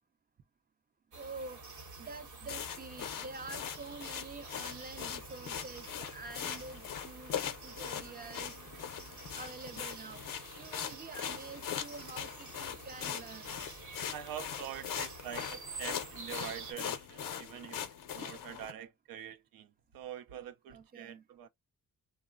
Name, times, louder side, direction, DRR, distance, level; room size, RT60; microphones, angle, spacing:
voice 1, 1.1-1.6 2.0-8.6 9.3-10.2 10.6-13.6 20.7-21.2, right 3 dB, 30° right, 0.4 m, -47 dB
sound 1, 1.1-16.7, right 4 dB, 60° right, 0.9 m, -49 dB
sound 2, 2.5-18.7, left 9 dB, 75° left, 0.6 m, -41 dB
voice 2, 14.1-17.8 18.1-19.7 19.9-21.5, right 10 dB, 85° right, 0.5 m, -45 dB
3.1 x 2.0 x 2.4 m
wide cardioid pair, 130°, 34 cm